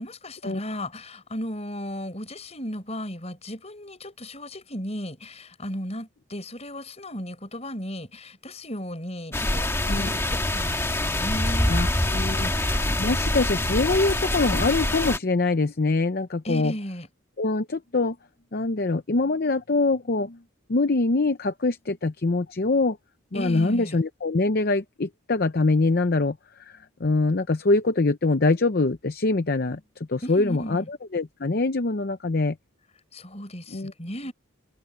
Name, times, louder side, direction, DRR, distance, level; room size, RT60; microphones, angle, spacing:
voice 1, 0.0-11.8 16.4-17.1 23.3-24.0 30.2-30.9 33.1-34.3, equal, 30° left, 6.1 m, -35 dB
sound 1, 9.3-15.2, left 1 dB, 15° left, 1.8 m, -25 dB
voice 2, 11.7-16.7 17.4-18.2 18.5-20.4 20.7-23.0 23.3-32.6 33.7-33.9, left 3 dB, 45° left, 0.7 m, -24 dB
head